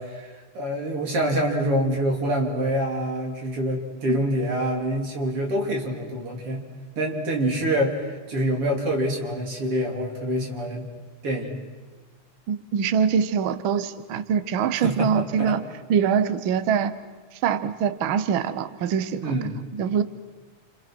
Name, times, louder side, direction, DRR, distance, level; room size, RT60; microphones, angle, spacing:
voice 1, 0.0-6.6 7.0-10.9 11.2-11.6 14.8-15.6 19.2-19.5, equal, 50° right, 1 dB, 4.0 m, -26 dB
voice 2, 12.5-15.6 15.9-16.9 17.4-19.4 19.7-20.0, right 7 dB, 65° right, 12 dB, 1.3 m, -24 dB
30.0 x 26.5 x 6.1 m, 1.3 s
omnidirectional pair, 3.5 m